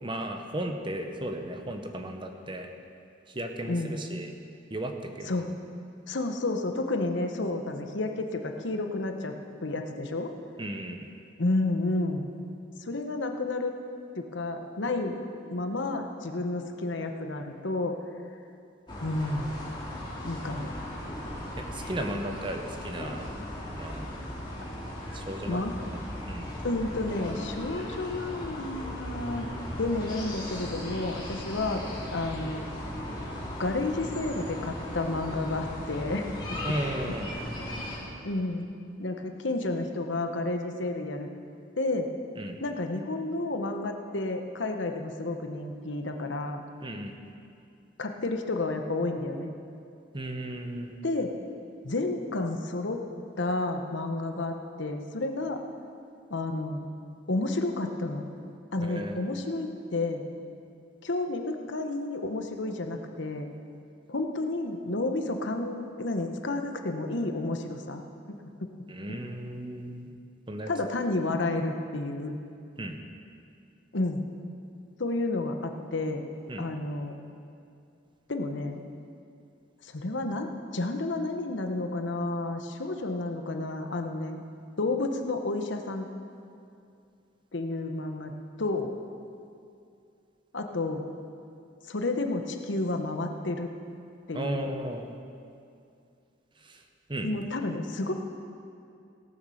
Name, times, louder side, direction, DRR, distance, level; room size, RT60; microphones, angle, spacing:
voice 1, 0.0-2.7 3.3-4.3 4.7-5.4 10.6-11.0 21.5-23.3 23.7-24.1 25.1-26.5 36.6-37.4 42.4-42.6 46.8-47.1 50.1-50.9 58.8-59.2 68.9-70.1 70.5-70.7 72.8-73.0 76.5-76.7 94.3-95.1 96.6-96.8 97.1-97.3, right 1 dB, 25° right, 5 dB, 0.8 m, -35 dB
voice 2, 3.7-4.0 5.3-5.5 6.1-10.3 11.4-12.3 12.8-13.7 14.2-15.2 15.5-18.0 19.0-19.5 20.2-20.7 25.5-25.7 26.6-29.5 29.8-31.8 32.1-32.7 33.6-36.6 38.2-38.7 39.0-41.3 41.8-42.1 42.6-46.6 48.0-49.5 51.0-51.3 51.8-53.0 53.4-55.6 56.3-56.8 57.3-58.2 58.7-60.3 61.0-63.5 64.1-68.0 68.6-68.7 70.7-72.4 73.9-74.2 75.0-76.3 76.6-77.1 78.3-78.8 79.8-84.4 84.8-86.1 87.5-88.3 88.6-88.9 90.5-91.0 91.9-93.7 94.3-94.7 97.2-98.1, left 2 dB, 70° left, 5 dB, 0.9 m, -31 dB
sound 1, 18.9-38.0, left 1 dB, 25° left, 2.5 m, -37 dB
17.5 x 6.8 x 6.4 m, 2.5 s
head